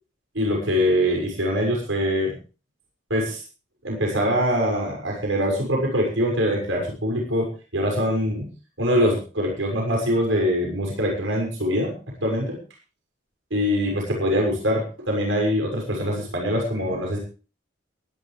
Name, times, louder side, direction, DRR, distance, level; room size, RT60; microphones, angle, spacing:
voice 1, 0.3-2.4 3.1-3.4 3.8-8.5 8.8-11.9 12.2-12.6 13.5-17.2, equal, 80° right, 0 dB, 6.3 m, -23 dB
22.5 x 11.5 x 3.4 m, 0.36 s
head